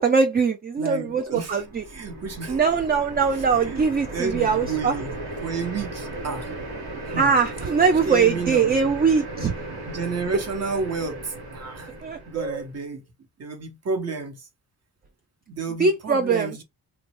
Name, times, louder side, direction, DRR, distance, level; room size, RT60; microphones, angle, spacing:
voice 1, 0.0-1.8 2.5-4.9 7.2-9.5 12.0-12.6 15.8-16.6, right 5 dB, 25° right, 0.3 m, -22 dB
voice 2, 0.8-2.8 3.3-6.5 7.0-7.7 8.0-8.8 9.4-9.5 9.8-11.9 12.3-13.0 13.4-14.5 15.5-16.6, right 4 dB, 40° right, 1.0 m, -32 dB
sound 1, 1.3-12.7, right 2 dB, 85° right, 1.4 m, -36 dB
3.0 x 2.3 x 2.9 m
cardioid pair, 115°, 37 cm